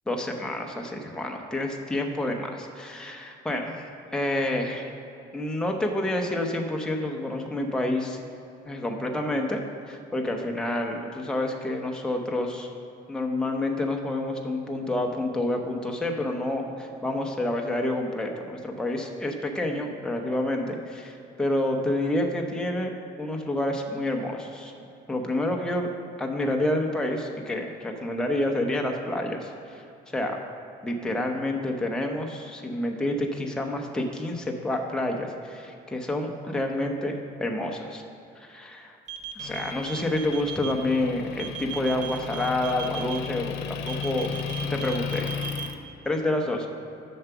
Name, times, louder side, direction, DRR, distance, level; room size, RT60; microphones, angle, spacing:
voice 1, 0.1-4.9 5.3-8.2 8.6-12.7 13.1-22.9 23.2-24.7 25.1-25.9 26.2-29.8 30.1-30.4 30.8-37.1 37.4-38.0 38.4-39.0 39.4-44.4 44.7-45.3 46.0-46.6, left 1 dB, 5° left, 1 dB, 0.8 m, -28 dB
sound 1, 39.1-40.7 41.4-43.2 43.9-45.7, right 10 dB, 45° right, 0.8 m, -37 dB
Motor vehicle (road) / Engine, 39.4-45.8, left 7 dB, 85° left, 0.7 m, -35 dB
7.3 x 5.9 x 6.8 m, 2.8 s
cardioid pair, 110°, 17 cm